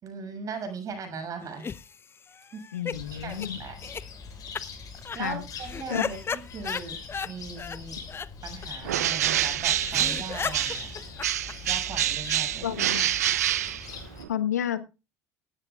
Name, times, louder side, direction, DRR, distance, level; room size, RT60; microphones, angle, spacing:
voice 1, 0.0-1.7 2.5-3.8 5.1-8.0 8.4-10.9 11.7-12.8, right 5 dB, 45° right, 5 dB, 6.9 m, -39 dB
sound 1, 1.4-3.0 3.3-3.5 3.8-4.0 4.5-4.6 4.9-5.2 5.6-7.3 7.6-7.8 8.1-8.3 8.6-8.7 8.9-9.0 9.3-9.4 9.6-9.7 9.9-12.0, left 6 dB, 30° left, 0.7 m, -35 dB
voice 2, 2.7-3.6 5.1-5.4 5.9-6.0 12.6-13.1 14.3-14.8, left 10 dB, 85° left, 11 dB, 1.3 m, -30 dB
Cricket, 2.9-14.2, left 5 dB, 45° left, 7.2 m, -42 dB
Bird, 8.8-10.9 11.2-14.3, right 12 dB, 80° right, 0.8 m, -27 dB
18.0 x 14.0 x 2.4 m, 0.30 s
hypercardioid pair, 65°, 8 cm